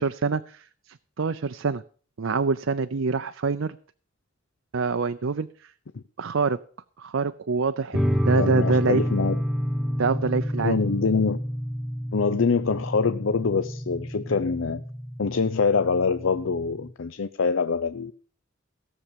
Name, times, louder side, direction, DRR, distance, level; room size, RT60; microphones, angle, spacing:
voice 1, 0.0-1.8 2.2-3.8 4.7-5.5 6.2-6.6 7.0-9.0 10.0-10.8, right 4 dB, 75° right, 10 dB, 0.6 m, -26 dB
sound 1, 7.9-16.9, equal, 5° right, 0.8 m, -29 dB
voice 2, 8.4-9.4 10.6-11.4 12.1-14.8 15.2-18.1, left 5 dB, 75° left, 12 dB, 0.6 m, -24 dB
16.5 x 7.2 x 6.9 m, 0.43 s
head